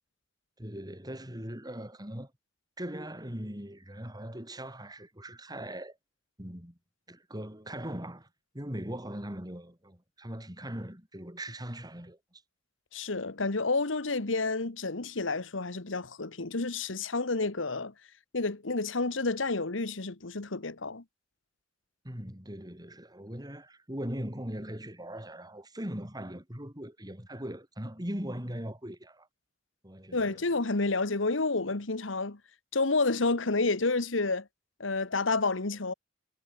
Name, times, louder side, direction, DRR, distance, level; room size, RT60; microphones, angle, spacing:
voice 1, 0.6-2.3 2.8-6.0 6.4-6.8 7.1-8.3 8.5-12.4 22.0-29.3 29.8-30.4, equal, 20° right, 7.4 m, -40 dB
voice 2, 12.9-17.9 18.3-21.0 30.1-32.4 32.7-34.5 34.8-35.9, left 3 dB, 90° left, 1.5 m, -30 dB
head